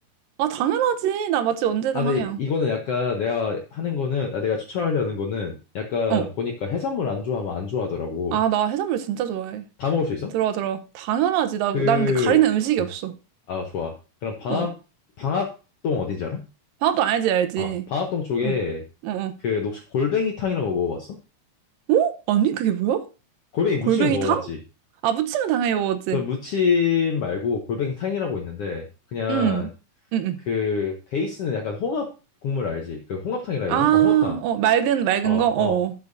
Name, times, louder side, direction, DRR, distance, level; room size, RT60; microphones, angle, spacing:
voice 1, 0.4-2.4 6.1-6.2 8.3-9.6 10.3-13.1 14.5-14.7 16.8-17.9 18.4-18.6 19.0-19.3 21.9-23.0 23.9-24.4 25.0-26.2 29.3-29.7 30.1-30.4 33.7-35.9, right 10 dB, 80° right, 2.5 m, -22 dB
voice 2, 1.9-8.4 9.8-10.3 11.7-12.4 13.5-13.9 14.2-14.7 15.2-15.5 15.8-16.4 17.6-18.8 19.4-21.1 23.5-24.6 26.1-28.9 29.1-29.7 30.5-32.1 32.4-34.4 35.2-35.8, left 5 dB, 70° left, 1.4 m, -26 dB
12.0 x 6.9 x 2.7 m
omnidirectional pair, 4.0 m